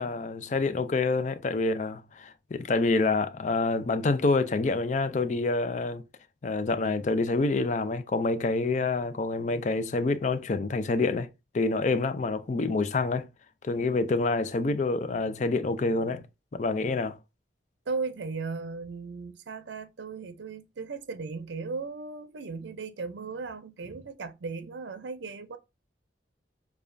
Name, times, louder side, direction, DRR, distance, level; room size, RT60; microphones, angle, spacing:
voice 1, 0.0-6.0 6.4-11.3 11.5-13.3 13.6-16.2 16.5-17.2, left 3 dB, 40° left, 0.4 m, -27 dB
voice 2, 13.7-14.0 17.9-25.6, right 4 dB, 75° right, 0.5 m, -37 dB
6.8 x 2.3 x 2.5 m
head